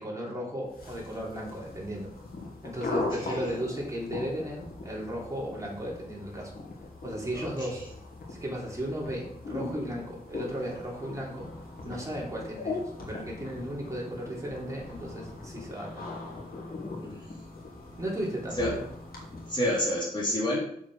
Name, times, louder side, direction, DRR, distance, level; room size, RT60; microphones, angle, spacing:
voice 1, 0.0-2.1 2.6-6.5 7.0-7.8 8.3-11.5 11.8-16.1 18.0-18.9, equal, 20° right, -4 dB, 3.6 m, -35 dB
sound 1, 0.7-20.0, left 3 dB, 90° left, 2.4 m, -40 dB
voice 2, 2.9-3.4 7.4-7.5 17.0-17.2 18.6-18.8 19.5-20.7, left 1 dB, 30° left, -6 dB, 3.6 m, -29 dB
7.3 x 7.1 x 5.0 m, 0.66 s
wide cardioid pair, 105°, 15 cm